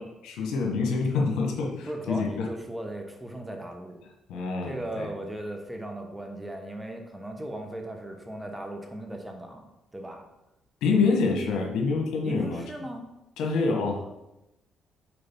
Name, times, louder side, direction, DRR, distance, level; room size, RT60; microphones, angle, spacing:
voice 1, 0.0-2.5 4.3-5.1 10.8-12.6 13.4-14.0, left 4 dB, 90° left, 0 dB, 1.5 m, -26 dB
voice 2, 1.9-4.0 4.6-10.2 11.1-11.2 12.2-13.0, right 1 dB, 10° right, 3 dB, 1.2 m, -37 dB
7.0 x 3.8 x 5.5 m, 0.92 s
cardioid pair, 90°, 0 cm